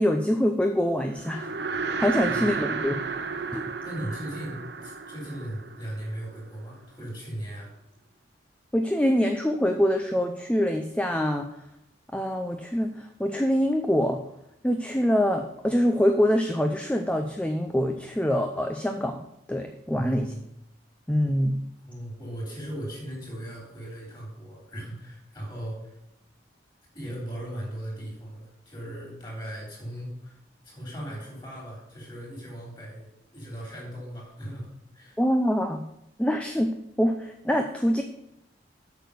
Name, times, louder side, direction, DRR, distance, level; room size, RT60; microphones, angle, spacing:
voice 1, 0.0-1.5 2.0-3.0 3.5-3.7 8.7-11.5 12.1-14.2 14.6-20.3 21.1-21.6 35.2-35.8 36.2-38.0, equal, 5° left, 5 dB, 0.5 m, -25 dB
sound 1, 1.1-6.6, right 5 dB, 70° right, 0.8 m, -32 dB
voice 2, 3.8-7.7 19.9-20.4 21.8-25.9 26.9-30.4 30.6-35.2, right 1 dB, 25° left, -2 dB, 4.1 m, -38 dB
8.1 x 6.5 x 6.8 m, 0.84 s
head